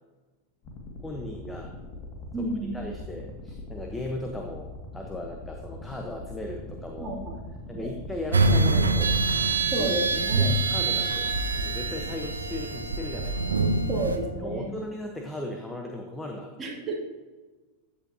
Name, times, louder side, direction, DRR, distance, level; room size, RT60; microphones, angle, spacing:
sound 1, 0.6-15.0, left 2 dB, 35° left, 2.1 m, -42 dB
voice 1, 1.0-1.7 2.4-2.5 2.7-7.2 7.7-9.2 9.8-9.9 10.4-13.6 14.4-16.5, left 1 dB, 10° left, 2 dB, 1.1 m, -37 dB
voice 2, 2.3-2.9 7.0-7.4 7.7-7.9 9.7-10.5 13.9-14.8 16.6-17.0, right 2 dB, 15° right, -4 dB, 2.5 m, -31 dB
sound 2, 8.3-14.2, right 3 dB, 70° right, 0.8 m, -25 dB
Wind instrument woodwind instrument, 10.6-14.6, left 2 dB, 75° left, 1.3 m, -43 dB
14.5 x 8.6 x 2.8 m, 1.3 s
figure-of-eight pair, 90°, 0 cm